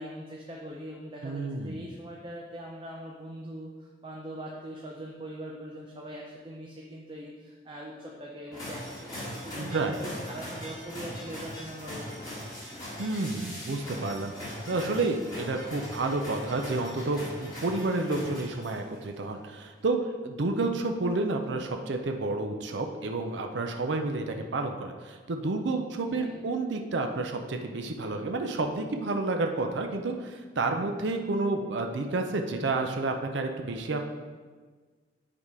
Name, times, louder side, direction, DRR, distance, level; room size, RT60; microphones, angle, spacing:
voice 1, 0.0-12.0 12.4-12.7 26.1-26.4, equal, 25° right, -2 dB, 0.6 m, -42 dB
voice 2, 1.2-1.8 9.6-10.0 13.0-20.0 20.2-34.1, right 2 dB, 70° right, 4 dB, 0.5 m, -30 dB
sound 1, 8.5-18.9, equal, 20° left, 2.2 m, -40 dB
8.8 x 3.6 x 4.7 m, 1.4 s
head